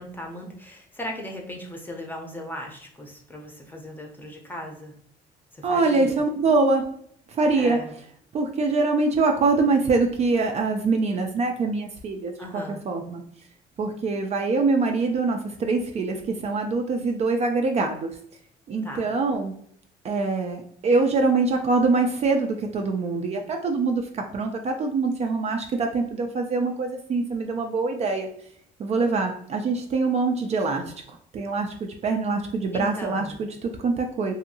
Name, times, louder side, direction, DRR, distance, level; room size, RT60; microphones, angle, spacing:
voice 1, 0.0-4.9 5.5-6.2 7.5-7.9 12.4-12.8 18.8-19.1 32.7-33.4, equal, 10° left, 1 dB, 0.6 m, -37 dB
voice 2, 5.6-6.8 7.3-7.8 8.3-13.2 13.8-18.1 18.7-19.5 20.0-28.3 28.8-30.9 31.3-34.3, right 3 dB, 40° right, 3 dB, 0.4 m, -24 dB
2.7 x 2.6 x 2.6 m, 0.64 s
cardioid pair, 110°, 17 cm